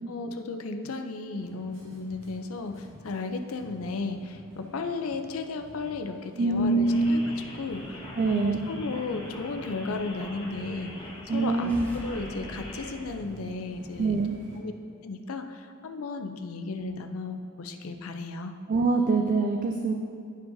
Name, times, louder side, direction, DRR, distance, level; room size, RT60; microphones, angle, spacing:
voice 1, 0.1-7.2 7.6-14.2 14.6-14.7 15.0-18.5, left 3 dB, 75° left, 7 dB, 0.5 m, -35 dB
sound 1, 1.4-14.6, equal, 85° right, 1.3 m, -49 dB
voice 2, 6.4-7.1 8.2-8.6 11.3-11.9 14.0-14.3 18.7-19.9, right 3 dB, 40° right, 4 dB, 0.3 m, -24 dB
sound 2, 6.8-12.9, left 1 dB, 25° left, 1.4 m, -43 dB
sound 3, 11.4-14.1, equal, 10° left, 0.6 m, -45 dB
11.5 x 4.6 x 2.6 m, 2.5 s
head